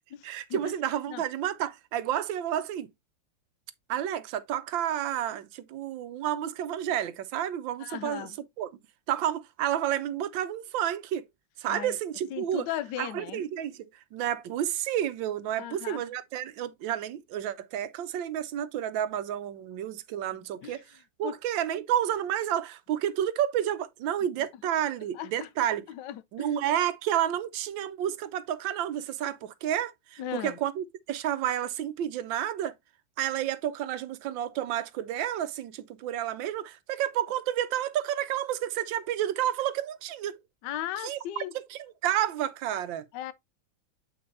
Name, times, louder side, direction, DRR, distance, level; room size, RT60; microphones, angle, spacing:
voice 1, 0.2-2.9 3.9-8.3 8.6-8.7 9.1-11.2 11.6-12.7 13.0-25.8 26.3-32.7 33.2-40.4 41.0-41.4 41.7-43.1, right 11 dB, 80° right, 1.4 m, -30 dB
voice 2, 7.8-8.4 11.7-12.0 12.3-13.4 15.6-16.0 20.6-20.8 21.2-21.4 25.1-25.5 25.9-26.5 30.2-30.6 40.6-41.5 43.1-43.3, left 11 dB, 75° left, 1.2 m, -37 dB
7.8 x 5.4 x 2.6 m
omnidirectional pair, 2.1 m